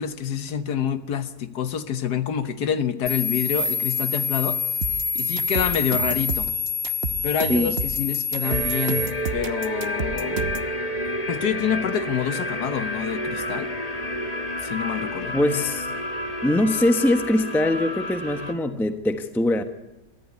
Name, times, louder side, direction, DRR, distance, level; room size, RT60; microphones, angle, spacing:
voice 1, 0.0-4.6 5.1-6.5 7.2-10.5 11.3-13.7 14.6-15.4, left 8 dB, 85° left, 1.7 m, -27 dB
sound 1, 3.1-9.1, left 4 dB, 65° right, 2.6 m, -26 dB
sound 2, 4.8-10.7, right 5 dB, 45° right, 1.0 m, -31 dB
sound 3, 8.4-18.5, left 1 dB, 25° left, 1.2 m, -30 dB
voice 2, 15.3-15.9 16.4-19.6, left 1 dB, ahead, 0.9 m, -22 dB
23.0 x 14.0 x 9.5 m
omnidirectional pair, 1.7 m